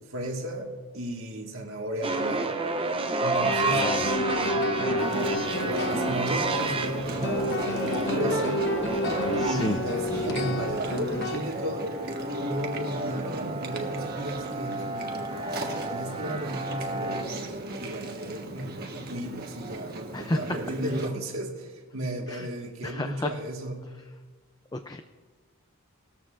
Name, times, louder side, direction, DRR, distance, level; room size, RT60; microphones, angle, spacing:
voice 1, 0.1-2.6 3.2-3.9 4.4-8.6 9.4-12.0 12.4-15.2 15.6-17.3 17.8-23.9, right 1 dB, 65° right, 2 dB, 1.8 m, -34 dB
sound 1, 2.0-17.2, right 2 dB, 25° right, 0.6 m, -31 dB
sound 2, 3.3-11.4, left 1 dB, 50° left, 1.0 m, -30 dB
voice 2, 3.8-4.1 9.4-9.8 20.1-20.4 22.3-22.5 22.8-23.3 24.7-25.0, left 1 dB, 15° left, 7 dB, 0.4 m, -30 dB
Chewing mastication, 5.0-21.1, right 1 dB, 45° right, 1.3 m, -36 dB
18.5 x 13.5 x 2.5 m, 1.3 s
head